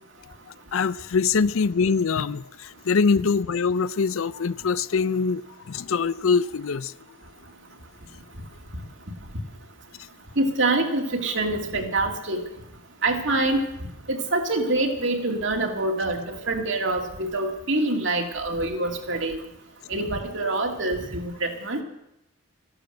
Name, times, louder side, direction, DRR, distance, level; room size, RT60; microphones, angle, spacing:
voice 1, 0.7-6.9, left 5 dB, 75° left, 0.5 m, -23 dB
voice 2, 10.4-12.4 13.0-13.6 14.1-19.4 19.9-21.8, right 2 dB, 60° right, 2.3 m, -25 dB
14.5 x 12.0 x 7.8 m
head